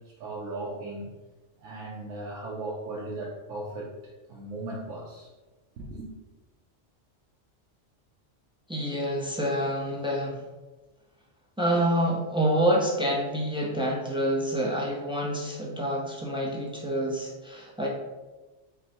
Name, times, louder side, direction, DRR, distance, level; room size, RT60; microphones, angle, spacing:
voice 1, 0.2-1.1 1.6-5.3 5.8-6.1, right 2 dB, 90° right, -4 dB, 1.1 m, -37 dB
voice 2, 8.7-10.4 11.6-17.9, equal, 5° right, -2 dB, 0.4 m, -27 dB
4.9 x 2.2 x 4.1 m, 1.2 s
omnidirectional pair, 1.2 m